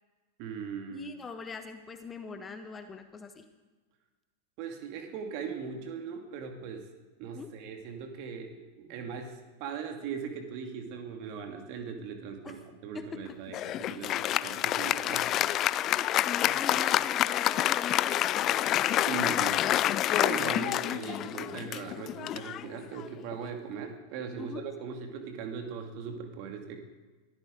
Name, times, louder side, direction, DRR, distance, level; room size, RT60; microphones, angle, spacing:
voice 1, 0.4-1.1 4.6-6.9 7.2-15.3 19.1-19.7 20.1-26.8, right 6 dB, 45° right, 5 dB, 2.4 m, -39 dB
voice 2, 0.9-3.4 7.3-7.5 12.4-12.6 12.9-13.0 15.9-18.7 20.3-20.6 24.4-24.6, left 5 dB, 20° left, 8 dB, 1.3 m, -42 dB
Applause, 13.5-23.3, left 13 dB, 35° left, 0.4 m, -28 dB
23.0 x 14.5 x 3.9 m, 1.3 s
figure-of-eight pair, 90°, 0 cm